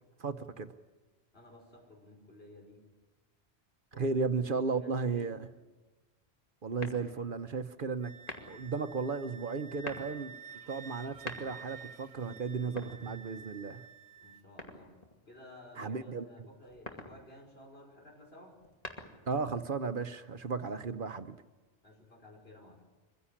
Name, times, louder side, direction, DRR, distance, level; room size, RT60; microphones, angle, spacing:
voice 1, 0.2-0.7 4.0-5.5 6.6-8.1 8.4-10.4 10.7-13.8 15.8-16.5 19.3-21.4, right 4 dB, 55° right, 11 dB, 1.0 m, -35 dB
voice 2, 1.3-2.8 3.9-4.1 4.5-5.4 14.2-14.9 15.3-18.6 21.8-22.8, left 1 dB, 65° left, 1 dB, 5.6 m, -54 dB
sound 1, 6.8-7.4 8.2-8.7 9.6-10.2 11.0-11.8 12.6-13.5 14.6-15.2 16.6-17.2 18.5-19.4, left 1 dB, 35° left, 2.5 m, -45 dB
Wind instrument woodwind instrument, 8.0-14.4, right 5 dB, 80° right, 1.2 m, -50 dB
24.5 x 16.0 x 9.8 m, 1.2 s
omnidirectional pair, 1.1 m